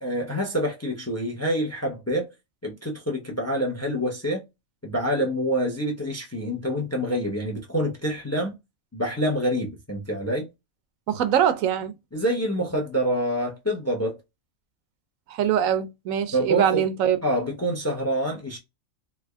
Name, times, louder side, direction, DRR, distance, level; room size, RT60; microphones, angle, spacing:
voice 1, 0.0-2.3 2.6-4.4 4.8-8.6 8.9-10.5 12.1-14.2 16.3-16.8 17.2-18.6, equal, 15° left, 0.5 m, -26 dB
voice 2, 11.1-11.9 15.3-17.2, right 9 dB, 80° right, 1.0 m, -23 dB
3.3 x 3.2 x 2.3 m
omnidirectional pair, 1.4 m